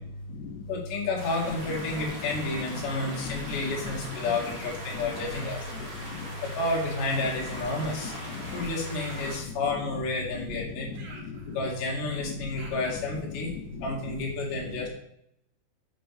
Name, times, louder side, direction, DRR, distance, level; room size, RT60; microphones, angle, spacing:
voice 1, 0.7-5.7 6.4-8.1 8.5-10.9 11.5-13.5 13.8-14.9, left 2 dB, 60° left, -3 dB, 3.2 m, -31 dB
sound 1, 1.2-9.4, right 1 dB, 85° right, 0.5 m, -41 dB
voice 2, 2.5-3.9 4.2-4.6 6.1-6.2 7.9-8.6 9.8-10.0 10.4-10.6 10.9-11.0 11.2-11.6 12.2-12.9 13.1-14.3, left 5 dB, 80° left, -1 dB, 3.0 m, -38 dB
Human voice, 5.3-5.7 7.1-7.5 8.9-9.5 10.9-11.8 12.6-13.1, right 3 dB, 60° right, 2.8 m, -50 dB
7.5 x 6.9 x 3.3 m, 0.77 s
omnidirectional pair, 4.7 m